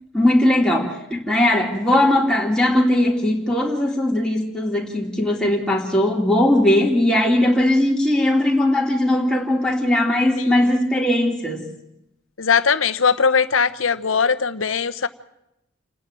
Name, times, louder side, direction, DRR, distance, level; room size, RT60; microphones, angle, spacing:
voice 1, 0.1-11.6, left 1 dB, 5° left, -2 dB, 3.3 m, -19 dB
voice 2, 12.4-15.1, left 6 dB, 85° left, 12 dB, 1.0 m, -20 dB
29.0 x 10.0 x 9.1 m, 0.86 s
head